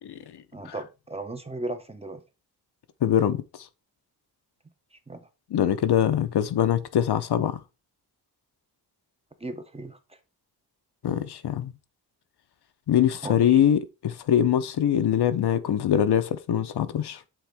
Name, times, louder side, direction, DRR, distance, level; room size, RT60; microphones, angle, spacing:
voice 1, 0.0-0.7 3.0-3.4 5.5-7.6 11.0-11.7 12.9-17.2, left 10 dB, 80° left, 0.7 m, -23 dB
voice 2, 0.5-2.2 5.1-5.3 9.4-10.0 13.2-13.6, right 2 dB, 15° right, 0.6 m, -36 dB
7.7 x 3.6 x 3.4 m
wide cardioid pair, 115°, 39 cm